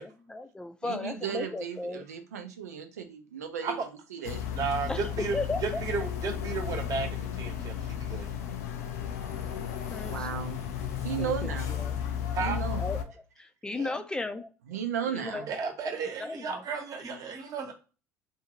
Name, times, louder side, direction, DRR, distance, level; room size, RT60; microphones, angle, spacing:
voice 1, 0.0-2.1 4.9-5.8 9.5-9.6 9.9-10.3 11.2-12.0 12.8-14.5 15.1-15.5 16.2-16.6, left 2 dB, 10° left, 0.5 m, -36 dB
voice 2, 0.8-3.8 4.1-4.4 10.0-10.6 11.0-11.8 12.4-12.8 14.7-15.5, right 8 dB, 85° right, 0.5 m, -35 dB
sound 1, 4.2-13.0, left 9 dB, 75° left, 0.5 m, -34 dB
voice 3, 4.5-5.3 5.6-8.3 11.1-11.2 12.3-12.6 13.7-14.0 15.5-17.7, right 5 dB, 45° right, 1.0 m, -33 dB
2.6 x 2.3 x 2.9 m
hypercardioid pair, 65°, 8 cm